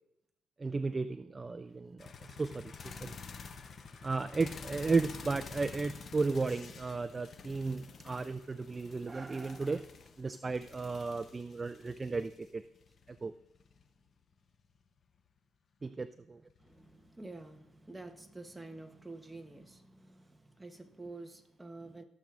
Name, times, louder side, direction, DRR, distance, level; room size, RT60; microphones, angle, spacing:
voice 1, 0.6-3.2 4.0-9.8 10.2-12.6 13.2-13.3 15.8-16.4, right 4 dB, 25° right, 0.3 m, -34 dB
sound 1, 2.0-14.9 16.5-17.1 18.8-18.9, left 5 dB, 50° left, 0.8 m, -49 dB
voice 2, 3.2-4.1 16.6-22.0, right 2 dB, 10° right, 1.0 m, -49 dB
15.5 x 7.3 x 2.5 m
cardioid pair, 90°, 0 cm